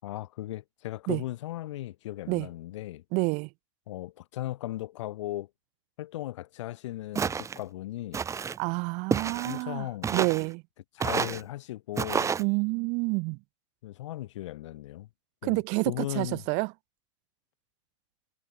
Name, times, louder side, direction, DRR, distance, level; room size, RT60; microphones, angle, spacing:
voice 1, 0.0-3.0 3.9-5.5 6.0-8.2 9.4-10.1 10.9-12.3 13.8-15.1 15.4-16.4, left 15 dB, 70° left, 7.0 m, -37 dB
voice 2, 3.1-3.5 8.6-10.6 12.4-13.4 15.4-16.7, right 30 dB, 50° right, 1.0 m, -28 dB
Walk footsteps, 7.2-7.6 8.1-8.6 9.1-9.6 10.0-10.5 11.0-11.4 12.0-12.4, right 6 dB, 20° right, 2.4 m, -29 dB
hypercardioid pair, 115°, 16 cm